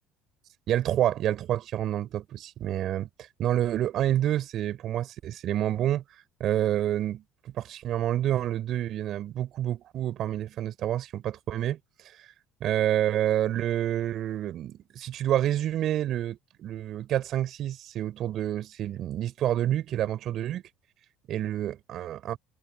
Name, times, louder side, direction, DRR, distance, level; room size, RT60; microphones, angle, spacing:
voice 1, 0.7-3.1 3.4-6.0 6.4-11.8 12.6-20.6 21.3-22.4, right 12 dB, 55° right, 5.4 m, -28 dB
hypercardioid pair, 75°, 0 cm